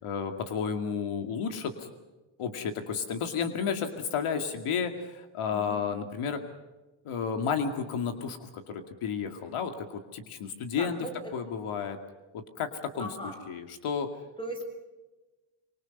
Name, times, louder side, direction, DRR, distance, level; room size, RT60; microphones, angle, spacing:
voice 1, 0.0-1.9 2.4-6.4 7.0-11.0 11.3-12.0 12.3-13.1 13.5-14.1, left 6 dB, 80° left, 6 dB, 2.4 m, -32 dB
voice 2, 10.8-11.3 13.0-13.4 14.4-14.6, equal, 10° left, 2 dB, 6.6 m, -38 dB
25.5 x 24.5 x 5.4 m, 1.1 s
cardioid pair, 170°, 49 cm